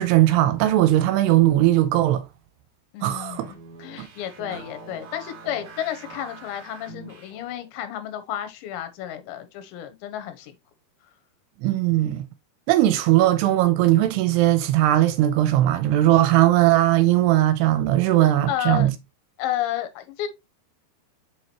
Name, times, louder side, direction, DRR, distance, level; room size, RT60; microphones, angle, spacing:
voice 1, 0.0-2.2 3.0-3.5 4.0-4.1 11.6-12.3 12.7-18.9, right 14 dB, 80° right, 2.5 m, -19 dB
voice 2, 2.9-10.5 18.5-18.9 19.4-20.3, left 11 dB, 85° left, 3.1 m, -31 dB
sound 1, 3.2-7.7, right 3 dB, 65° right, 1.3 m, -44 dB
6.7 x 4.7 x 3.0 m
omnidirectional pair, 5.0 m